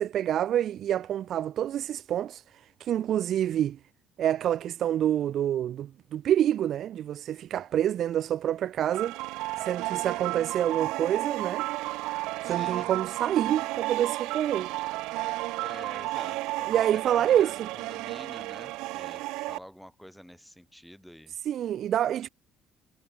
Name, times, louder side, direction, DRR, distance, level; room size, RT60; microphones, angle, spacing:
voice 1, 0.0-2.4 2.8-3.8 4.2-9.2 9.6-11.7 12.4-14.7 16.7-17.7 21.5-22.3, right 11 dB, 45° right, 0.5 m, -27 dB
sound 1, 8.9-19.6, right 20 dB, 90° right, 1.8 m, -33 dB
voice 2, 12.4-12.9 15.6-21.3, equal, ahead, 7.4 m, -47 dB
cardioid pair, 170°, 0 cm